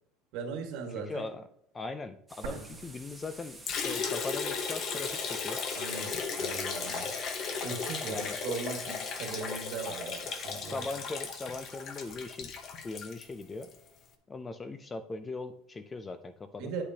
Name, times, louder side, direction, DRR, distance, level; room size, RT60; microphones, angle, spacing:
voice 1, 0.3-1.2 2.4-2.6 5.8-7.1 7.6-11.0 16.6-16.8, right 5 dB, 55° right, 3 dB, 1.6 m, -39 dB
voice 2, 0.9-1.5 1.7-5.6 8.1-8.4 10.3-12.5 12.8-13.7 14.3-16.7, left 3 dB, 15° left, 11 dB, 0.3 m, -40 dB
sound 1, 2.3-13.4, right 2 dB, 5° right, 0.9 m, -49 dB
sound 2, 2.4-4.4 4.7-4.8 5.5-6.4, right 6 dB, 85° right, 2.5 m, -47 dB
Liquid, 3.7-13.8, left 5 dB, 35° left, 0.8 m, -36 dB
8.5 x 8.0 x 2.8 m, 0.70 s
cardioid pair, 165°, 0 cm